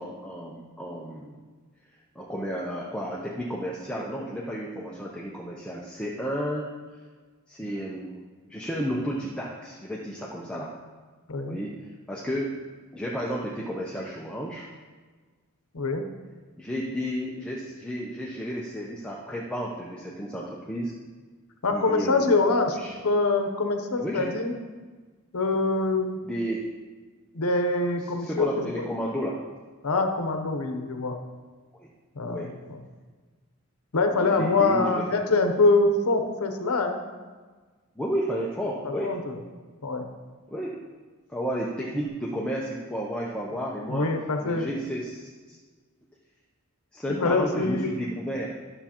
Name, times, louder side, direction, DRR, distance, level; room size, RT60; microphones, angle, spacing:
voice 1, 0.0-1.4 2.1-6.7 7.5-10.7 11.5-12.6 12.9-14.7 16.6-20.9 21.7-22.9 24.0-24.3 26.2-26.6 28.2-29.3 31.7-31.9 32.3-32.5 34.1-35.0 38.0-39.1 40.5-40.8 41.3-44.1 44.4-45.6 46.9-48.5, equal, 5° left, -4 dB, 0.6 m, -32 dB
voice 2, 15.7-16.0 21.6-22.8 23.0-24.5 25.3-26.2 27.3-28.8 29.8-31.2 32.1-32.8 33.9-37.0 38.8-39.3 39.8-40.1 43.9-44.7 47.2-47.9, left 3 dB, 80° left, 5 dB, 0.8 m, -24 dB
11.0 x 6.9 x 2.9 m, 1.4 s
head